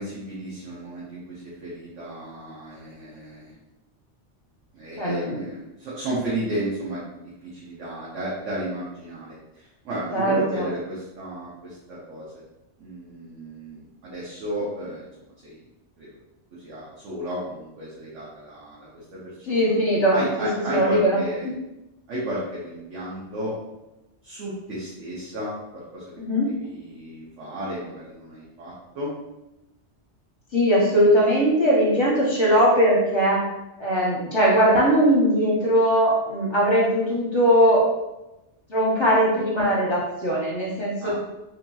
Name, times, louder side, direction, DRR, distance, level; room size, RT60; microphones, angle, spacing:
voice 1, 0.0-3.6 4.7-12.4 12.8-15.1 15.4-15.6 16.0-16.2 16.5-19.6 20.1-21.5 22.1-23.5 24.2-26.2 26.5-29.1 41.0-41.2, right 1 dB, 85° right, -7 dB, 1.1 m, -33 dB
voice 2, 5.0-5.5 10.1-10.7 19.4-21.2 26.2-26.5 30.5-33.4 33.8-37.8 38.7-41.2, equal, 30° left, -6 dB, 0.7 m, -20 dB
2.8 x 2.7 x 2.2 m, 0.96 s
omnidirectional pair, 1.2 m